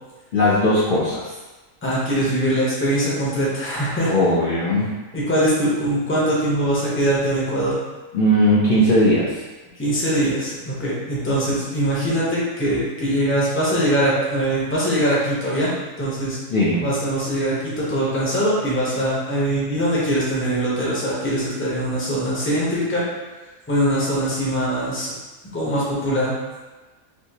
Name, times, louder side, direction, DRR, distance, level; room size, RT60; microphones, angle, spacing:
voice 1, 0.3-1.3 4.1-4.9 8.1-9.4 16.5-16.8, equal, 55° left, -7 dB, 0.6 m, -18 dB
voice 2, 1.8-4.1 5.1-7.8 9.8-15.7 16.0-16.4 16.8-23.0 23.7-25.1 25.5-26.3, right 1 dB, 10° left, -7 dB, 0.7 m, -22 dB
3.4 x 2.8 x 2.8 m, 1.2 s
omnidirectional pair, 1.4 m